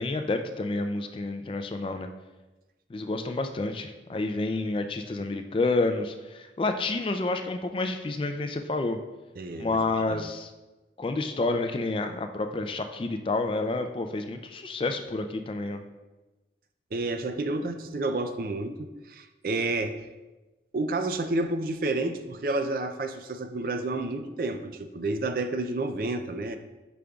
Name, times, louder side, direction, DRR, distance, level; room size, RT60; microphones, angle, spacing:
voice 1, 0.0-2.1 2.9-9.0 9.6-10.5 11.0-15.8, left 2 dB, 30° left, 7 dB, 0.3 m, -29 dB
voice 2, 9.4-9.8 10.1-10.2 16.9-20.1 20.7-26.6, right 2 dB, 50° right, 8 dB, 0.4 m, -30 dB
8.4 x 5.1 x 2.3 m, 1.1 s
head